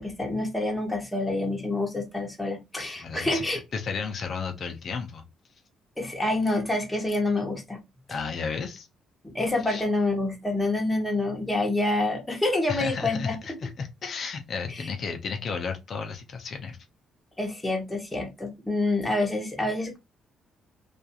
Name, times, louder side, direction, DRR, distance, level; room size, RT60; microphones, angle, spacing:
voice 1, 0.0-3.6 6.0-7.8 9.3-13.4 14.8-14.9 17.4-20.0, left 2 dB, 10° left, 0.8 m, -27 dB
voice 2, 3.0-3.4 3.7-5.2 8.1-8.9 9.6-9.8 12.7-16.8, left 5 dB, 50° left, 0.5 m, -33 dB
2.4 x 2.3 x 2.7 m
cardioid pair, 105°, 0 cm